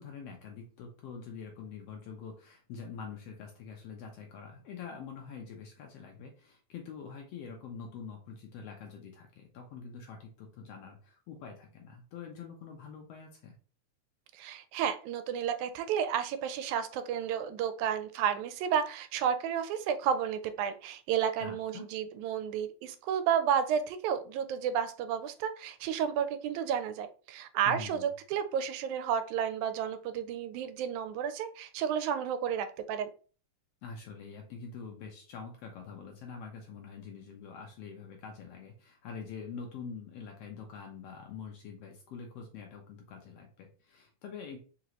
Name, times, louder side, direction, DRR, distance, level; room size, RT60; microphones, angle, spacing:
voice 1, 0.0-13.6 21.4-21.9 27.7-28.1 33.8-44.6, left 5 dB, 75° left, 2 dB, 1.5 m, -45 dB
voice 2, 14.3-33.1, right 8 dB, 90° right, 10 dB, 2.0 m, -32 dB
4.9 x 2.9 x 2.9 m, 0.38 s
omnidirectional pair, 3.3 m